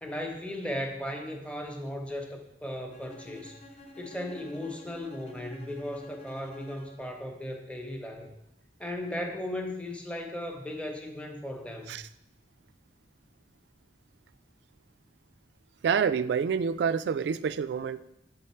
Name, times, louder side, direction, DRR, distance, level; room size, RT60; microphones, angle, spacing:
voice 1, 0.0-3.6 4.0-8.3 8.8-12.0, left 1 dB, 5° left, 2 dB, 0.8 m, -36 dB
Bowed string instrument, 2.9-7.2, left 1 dB, 35° left, 0.8 m, -49 dB
voice 2, 15.8-18.0, right 6 dB, 75° right, 14 dB, 0.3 m, -27 dB
8.3 x 4.0 x 4.3 m, 0.85 s
head